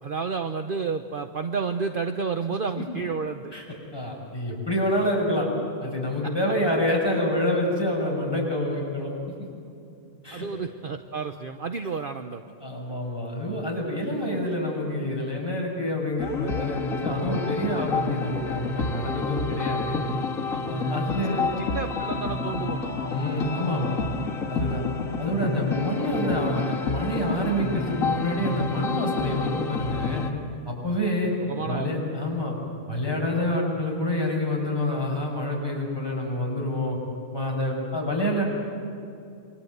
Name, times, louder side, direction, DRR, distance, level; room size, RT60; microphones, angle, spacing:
voice 1, 0.0-3.5 10.3-12.4 20.5-20.9 21.3-23.0 31.5-31.9 32.3-32.4, right 5 dB, 45° right, 7 dB, 0.9 m, -31 dB
voice 2, 3.9-5.5 5.8-9.1 10.2-10.4 12.6-20.0 20.7-21.5 23.0-24.0 24.5-24.8 25.2-30.2 30.6-31.3 31.6-32.6 32.9-37.0 37.3-38.4, left 1 dB, 20° left, -2 dB, 6.8 m, -27 dB
sound 1, 16.2-30.3, left 3 dB, 85° left, 2.3 m, -29 dB
28.0 x 24.0 x 8.0 m, 2.5 s
omnidirectional pair, 1.4 m